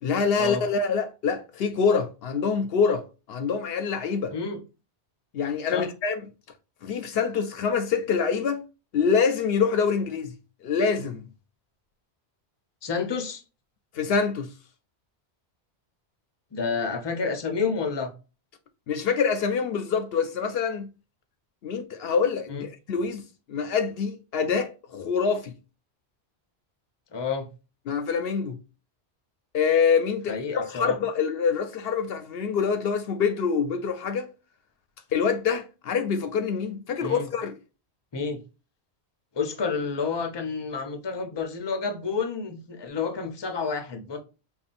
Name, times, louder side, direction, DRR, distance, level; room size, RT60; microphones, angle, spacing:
voice 1, 0.0-4.3 5.3-6.2 6.8-8.6 8.9-10.4 10.6-11.2 13.9-14.5 18.9-20.9 21.6-25.5 27.9-28.6 29.5-34.3 35.1-37.5, left 6 dB, 65° left, 0.7 m, -25 dB
voice 2, 4.3-4.6 5.7-5.9 12.8-13.4 16.5-18.1 22.5-22.7 27.1-27.5 30.3-31.0 37.0-37.3 38.1-38.4 39.3-44.2, left 5 dB, 30° left, 0.6 m, -29 dB
5.3 x 2.4 x 2.5 m
omnidirectional pair, 1.1 m